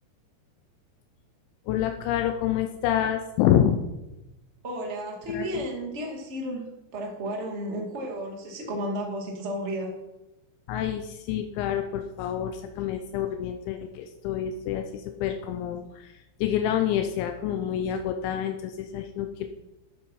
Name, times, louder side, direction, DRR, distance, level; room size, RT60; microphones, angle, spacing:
voice 1, 1.7-3.8 5.3-5.6 10.7-16.1 16.4-19.5, left 10 dB, 80° left, 6 dB, 3.0 m, -27 dB
voice 2, 4.6-6.6 6.9-9.9, equal, 30° right, 0 dB, 1.2 m, -33 dB
12.5 x 7.9 x 5.5 m, 0.94 s
omnidirectional pair, 5.3 m